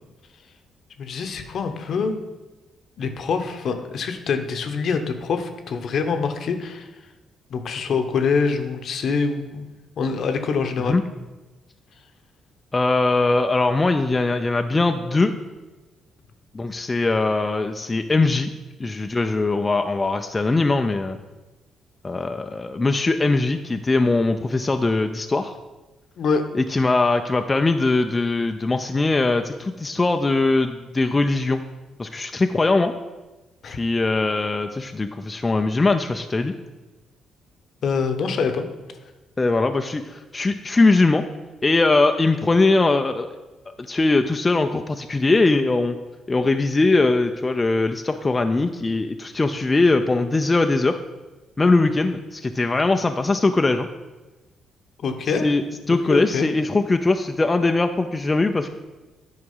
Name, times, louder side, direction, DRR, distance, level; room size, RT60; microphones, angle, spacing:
voice 1, 1.0-2.2 3.0-6.8 7.5-9.7 10.0-11.0 26.2-26.5 33.6-33.8 37.8-38.7 55.0-55.5 55.9-56.5, left 5 dB, 60° left, 7 dB, 0.9 m, -25 dB
voice 2, 12.7-15.3 16.5-18.5 18.8-21.2 22.0-25.5 26.5-31.6 32.0-32.9 33.7-36.5 39.4-41.2 41.6-43.3 43.7-46.0 46.3-51.0 51.6-53.9 55.4-58.7, left 3 dB, 25° left, 6 dB, 0.5 m, -21 dB
9.6 x 4.8 x 5.5 m, 1.1 s
cardioid pair, 90°, 0 cm